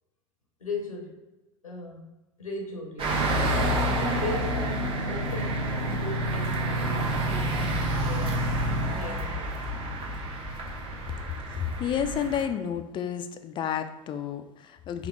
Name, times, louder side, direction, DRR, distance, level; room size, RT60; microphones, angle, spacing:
voice 1, 0.6-1.2 1.6-2.1 2.4-3.2 3.9-8.5 8.9-9.6, left 2 dB, 85° left, 0 dB, 0.8 m, -37 dB
sound 1, 3.0-12.5, right 1 dB, 30° right, 1.0 m, -30 dB
sound 2, 3.1-8.9, right 1 dB, 85° right, 1.1 m, -31 dB
voice 2, 11.5-15.1, left 8 dB, 30° left, 8 dB, 0.4 m, -31 dB
3.5 x 2.8 x 3.8 m, 1.1 s
figure-of-eight pair, 80°, 17 cm